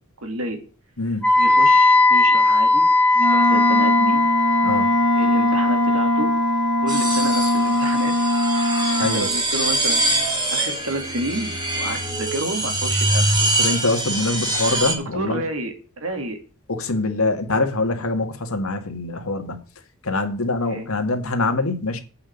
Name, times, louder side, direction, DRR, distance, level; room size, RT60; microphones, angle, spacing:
voice 1, 0.2-0.6 1.4-2.9 3.2-4.3 5.1-6.3 6.8-8.1 8.9-13.5 15.1-16.4 20.6-20.9, right 1 dB, 75° right, 2.3 m, -30 dB
voice 2, 1.0-1.3 4.6-4.9 9.0-9.3 13.6-15.4 16.7-19.6 20.0-22.0, left 2 dB, 80° left, 1.9 m, -24 dB
Wind instrument woodwind instrument, 1.2-9.2, left 2 dB, 10° left, 1.3 m, -19 dB
Wind instrument woodwind instrument 2, 3.2-9.2, left 1 dB, 55° right, 1.2 m, -21 dB
sound 1, 6.9-14.9, right 2 dB, 20° right, 2.3 m, -23 dB
8.8 x 5.8 x 7.0 m
head